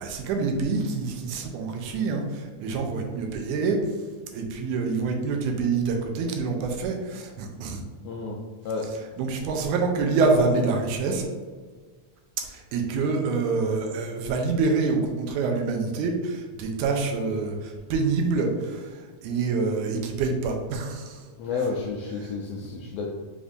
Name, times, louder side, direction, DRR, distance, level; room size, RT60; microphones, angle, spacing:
voice 1, 0.0-3.8 4.3-7.8 9.2-11.2 12.4-18.9 19.2-21.3 22.2-22.3, right 4 dB, 90° right, 3 dB, 2.1 m, -26 dB
voice 2, 8.0-8.4 8.6-8.9 21.4-23.1, left 4 dB, 85° left, -2 dB, 1.5 m, -30 dB
5.2 x 3.5 x 2.4 m, 1.5 s
omnidirectional pair, 3.5 m